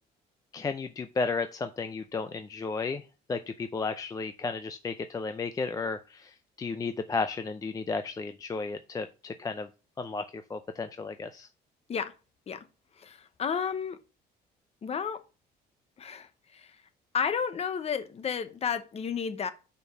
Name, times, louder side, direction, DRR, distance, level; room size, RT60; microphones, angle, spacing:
voice 1, 0.5-9.7 10.0-11.5, left 4 dB, 20° left, 0.4 m, -33 dB
voice 2, 13.0-14.0 14.8-15.2 16.0-16.7 17.1-19.5, left 6 dB, 40° left, 0.9 m, -32 dB
5.2 x 4.6 x 6.2 m
cardioid pair, 110°, 17 cm